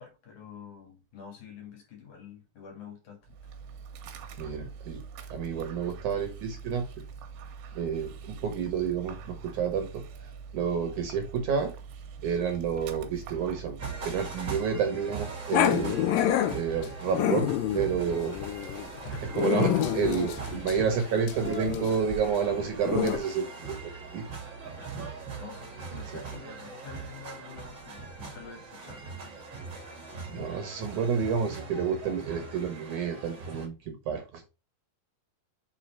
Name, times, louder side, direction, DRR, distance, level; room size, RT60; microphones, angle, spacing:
voice 1, 0.0-3.4 24.8-25.0 25.4-29.1, left 6 dB, 60° left, 3.0 m, -47 dB
Dog, 3.2-14.5, right 6 dB, 85° right, 2.9 m, -44 dB
voice 2, 4.4-5.0 5.3-6.9 7.7-10.0 10.5-11.7 12.2-13.8 14.0-16.0 16.5-17.5 17.7-18.4 19.2-23.7 24.1-24.2 30.3-34.5, right 6 dB, 65° right, 2.2 m, -29 dB
sound 1, 13.8-33.7, right 4 dB, 45° right, 1.6 m, -41 dB
Growling, 15.5-23.2, left 10 dB, 75° left, 2.2 m, -28 dB
6.3 x 4.0 x 4.3 m
omnidirectional pair, 4.4 m